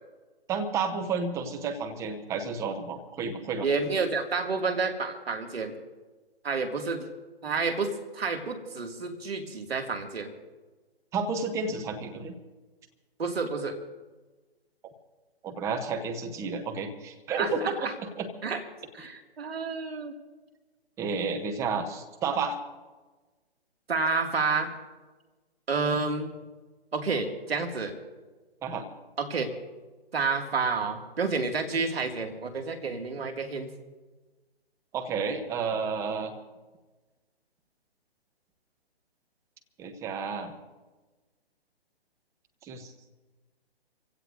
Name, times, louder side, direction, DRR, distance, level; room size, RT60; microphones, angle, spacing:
voice 1, 0.5-3.7 11.1-12.3 15.4-17.9 18.2-18.3 21.0-22.6 28.6-28.8 34.9-36.3 39.8-40.5 42.6-42.9, right 5 dB, 10° right, 5 dB, 0.7 m, -31 dB
voice 2, 3.6-5.8 6.4-7.1 7.4-10.3 13.2-13.8 17.4-17.9 18.4-18.6 18.9-20.1 23.9-24.7 25.7-26.3 26.9-27.9 29.2-29.5 30.1-33.7, right 4 dB, 65° right, 4 dB, 2.3 m, -29 dB
25.5 x 16.5 x 2.6 m, 1.2 s
figure-of-eight pair, 140°, 32 cm